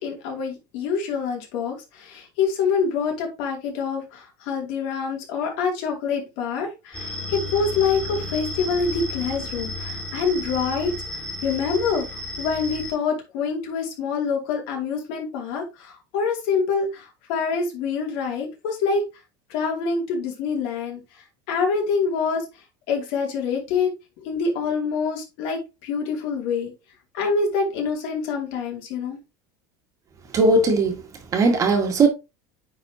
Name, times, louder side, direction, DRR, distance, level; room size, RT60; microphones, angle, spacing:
voice 1, 0.0-19.0 19.5-22.4 22.9-23.9 24.2-26.7 27.1-29.2, left 5 dB, 65° left, 2.7 m, -26 dB
sound 1, 6.9-12.9, left 1 dB, 10° left, 2.3 m, -33 dB
voice 2, 30.3-32.1, right 3 dB, 30° right, 1.6 m, -19 dB
9.5 x 4.2 x 2.8 m
supercardioid pair, 145°, 11 cm